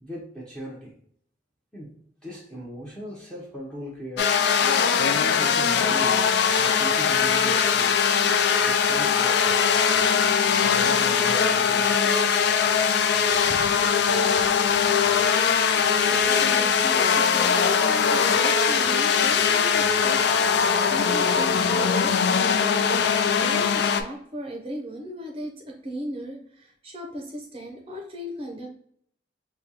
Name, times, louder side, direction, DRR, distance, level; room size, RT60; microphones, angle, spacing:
voice 1, 0.0-0.9 1.7-1.9 2.2-4.4 5.3-6.2 6.6-8.0 8.6-9.7 10.6-12.1, equal, 5° left, -6 dB, 0.8 m, -38 dB
sound 1, 4.2-24.0, left 6 dB, 60° left, 0.3 m, -21 dB
voice 2, 16.1-22.7 23.0-28.7, equal, 30° right, 1 dB, 0.6 m, -37 dB
5.0 x 2.3 x 2.8 m, 0.64 s
head